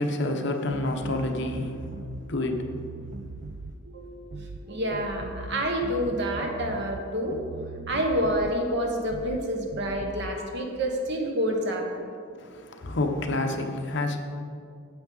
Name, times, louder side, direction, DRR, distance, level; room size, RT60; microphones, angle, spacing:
voice 1, 0.0-2.7 12.4-14.2, left 2 dB, 60° left, 4 dB, 0.8 m, -29 dB
sound 1, 0.7-2.2 2.5-3.8 4.3-4.6 4.9-7.0 7.3-8.6 9.1-9.4 9.7-10.3, right 3 dB, 35° right, 0.3 m, -39 dB
voice 2, 3.8-7.4 7.9-11.9, equal, 55° right, 2 dB, 1.0 m, -28 dB
8.7 x 7.9 x 3.9 m, 2.2 s
head